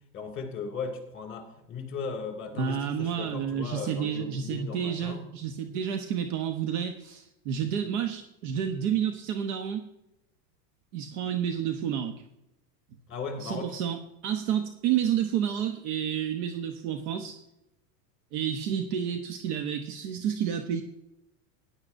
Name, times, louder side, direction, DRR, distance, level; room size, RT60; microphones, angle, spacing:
voice 1, 0.1-5.2 13.1-13.7, left 5 dB, 25° left, 5 dB, 2.1 m, -37 dB
voice 2, 2.6-9.9 10.9-12.2 13.4-17.4 18.3-20.8, right 9 dB, 65° right, 6 dB, 1.1 m, -30 dB
15.0 x 10.5 x 2.6 m, 0.88 s
supercardioid pair, 150°, 48 cm